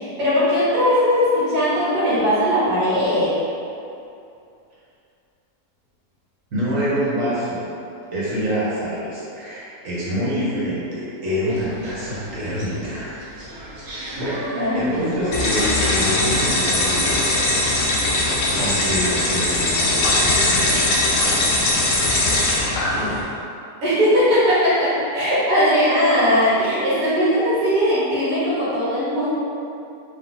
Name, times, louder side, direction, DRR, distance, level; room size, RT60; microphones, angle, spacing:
voice 1, 0.0-3.3 14.6-15.0 22.9-23.1 23.8-29.3, equal, 70° right, -10 dB, 1.7 m, -19 dB
voice 2, 6.5-7.7 8.1-13.2 14.2-17.2 18.5-21.1, equal, 55° right, -9 dB, 1.5 m, -26 dB
sound 1, 11.4-17.2, right 1 dB, 85° right, 1.6 m, -36 dB
sound 2, 15.3-23.2, left 2 dB, 80° left, 1.4 m, -20 dB
3.8 x 2.7 x 4.0 m, 2.6 s
omnidirectional pair, 1.8 m